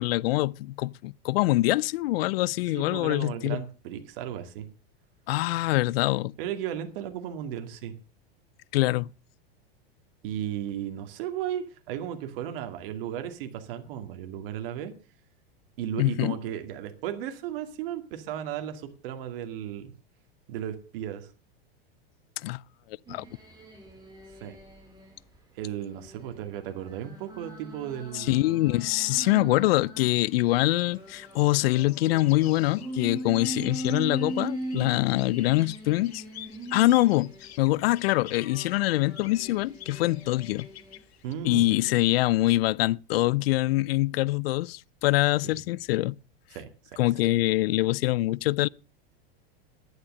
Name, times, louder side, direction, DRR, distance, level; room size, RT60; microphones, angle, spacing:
voice 1, 0.0-3.6 5.3-6.3 8.7-9.1 16.0-16.3 22.4-22.6 23.1-23.3 28.1-36.2 36.7-40.7 41.4-46.2 47.0-48.7, left 18 dB, 75° left, 0.5 m, -24 dB
voice 2, 2.7-4.7 6.4-7.9 10.2-14.9 15.8-19.9 20.5-21.3 24.4-24.6 25.5-28.5 41.2-41.7 45.4-45.6 46.5-47.0, right 10 dB, 60° right, 2.2 m, -35 dB
sound 1, 23.1-25.1 25.6-30.1 30.6-37.5 38.1-41.0 41.5-41.8, right 1 dB, 15° right, 4.9 m, -40 dB
sound 2, 30.1-41.3, left 12 dB, 90° left, 1.3 m, -47 dB
11.0 x 10.0 x 6.4 m
supercardioid pair, 130°, 31 cm